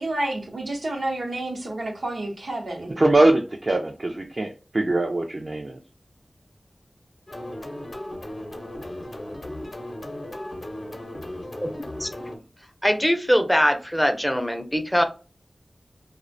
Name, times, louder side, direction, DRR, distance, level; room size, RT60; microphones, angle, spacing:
voice 1, 0.0-2.9, right 1 dB, 85° right, 0.6 m, -29 dB
voice 2, 2.9-5.8, right 2 dB, 50° right, 0.4 m, -22 dB
sound 1, 7.3-12.4, left 1 dB, 50° left, 0.6 m, -36 dB
voice 3, 12.8-15.0, equal, 5° left, 0.5 m, -22 dB
2.4 x 2.0 x 2.5 m
cardioid pair, 45°, 0 cm